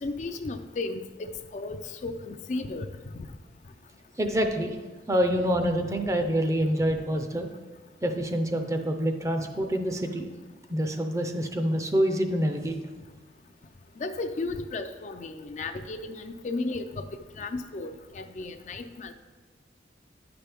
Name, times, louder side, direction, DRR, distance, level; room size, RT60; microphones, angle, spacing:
voice 1, 0.0-2.9 14.0-17.1 17.4-19.1, left 3 dB, 40° left, 7 dB, 0.4 m, -34 dB
voice 2, 4.2-4.8 5.1-7.5 8.0-10.3 10.7-12.8, equal, 15° right, 5 dB, 0.5 m, -26 dB
9.7 x 5.9 x 3.4 m, 1.3 s
head